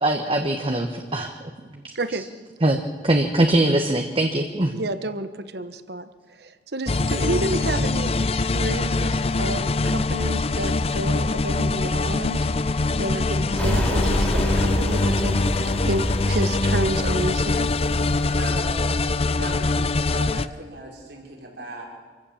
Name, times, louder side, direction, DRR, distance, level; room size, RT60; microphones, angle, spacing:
voice 1, 0.0-1.3 1.7-1.8 2.6-2.8 3.0-4.7, right 1 dB, 30° right, 4 dB, 1.2 m, -21 dB
voice 2, 1.9-2.3 4.7-6.1 6.4-12.5 12.9-17.7, right 1 dB, 65° right, 11 dB, 1.2 m, -30 dB
sound 1, 6.9-20.5, left 3 dB, 35° left, 0.5 m, -23 dB
sound 2, 13.6-18.6, equal, 10° left, 3.0 m, -28 dB
voice 3, 18.1-21.8, right 1 dB, 85° right, -1 dB, 5.3 m, -38 dB
26.5 x 16.0 x 7.2 m, 1.5 s
head